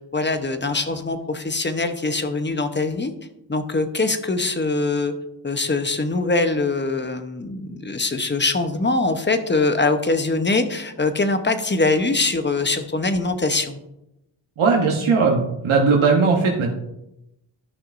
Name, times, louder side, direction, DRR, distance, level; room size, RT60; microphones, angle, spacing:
voice 1, 0.1-3.1 3.5-5.1 5.4-13.8, left 3 dB, 25° left, 8 dB, 0.9 m, -23 dB
voice 2, 14.6-16.7, right 4 dB, 90° right, 0 dB, 1.2 m, -18 dB
13.0 x 5.9 x 2.6 m, 0.87 s
cardioid pair, 70°, 47 cm